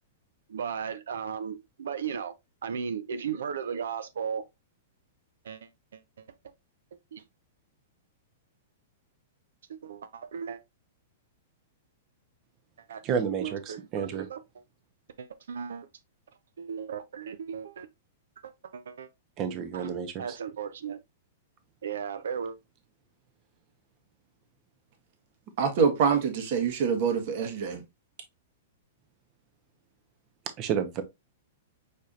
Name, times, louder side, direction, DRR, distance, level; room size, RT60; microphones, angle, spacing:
voice 1, 0.5-2.4 2.6-4.5 5.4-6.3 7.1-7.2 9.7-10.6 12.9-13.0 13.4-14.4 15.2-15.9 16.6-17.9 18.4-19.1 19.7-19.9 20.2-21.0 21.8-22.6, right 7 dB, 85° right, 0.5 m, -36 dB
voice 2, 13.0-14.3 19.4-20.4 30.6-31.0, right 7 dB, 35° right, 0.9 m, -30 dB
voice 3, 25.6-27.8, right 6 dB, 55° right, 1.4 m, -25 dB
4.9 x 4.3 x 2.5 m
hypercardioid pair, 140°, 0 cm